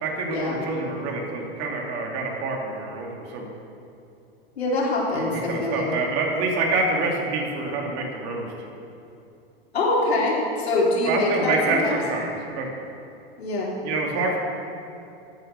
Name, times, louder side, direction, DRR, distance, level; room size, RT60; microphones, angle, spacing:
voice 1, 0.0-3.5 5.1-8.5 11.0-12.7 13.8-14.4, right 3 dB, 50° right, 0 dB, 2.7 m, -27 dB
voice 2, 4.6-5.8 9.7-12.0 13.4-13.7, left 2 dB, 85° left, -4 dB, 3.6 m, -24 dB
11.0 x 9.0 x 6.9 m, 2.6 s
hypercardioid pair, 100°, 31 cm